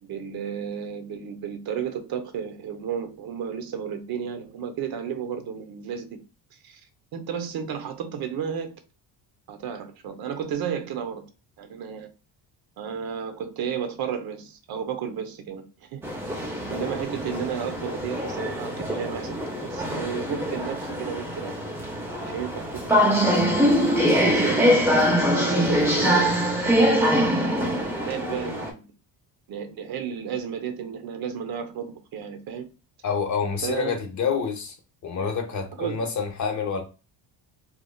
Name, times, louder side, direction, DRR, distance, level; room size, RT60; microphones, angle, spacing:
voice 1, 0.0-6.2 6.6-6.8 7.1-8.7 9.5-11.2 11.6-12.1 12.8-16.0 16.3-19.4 19.6-21.5 22.2-22.8 23.2-23.7 24.3-26.4 27.3-28.9 29.5-32.7 33.6-33.9 35.8-36.0, right 7 dB, 55° right, 0.7 m, -33 dB
sound 1, 16.0-28.7, equal, 5° right, 0.5 m, -23 dB
voice 2, 33.0-34.8 35.0-36.8, left 6 dB, 40° left, 0.8 m, -27 dB
3.1 x 2.3 x 2.2 m
cardioid pair, 125°, 44 cm